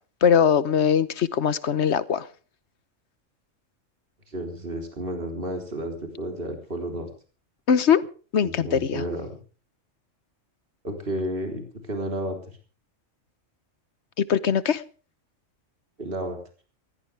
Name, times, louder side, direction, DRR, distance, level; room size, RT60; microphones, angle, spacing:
voice 1, 0.2-2.3 7.7-8.1 8.3-9.0 14.2-14.8, left 7 dB, 60° left, 16 dB, 1.2 m, -21 dB
voice 2, 4.3-7.1 8.4-9.3 10.8-12.4 16.0-16.4, right 1 dB, 45° right, 3 dB, 3.9 m, -31 dB
20.5 x 16.5 x 3.4 m, 0.38 s
omnidirectional pair, 1.3 m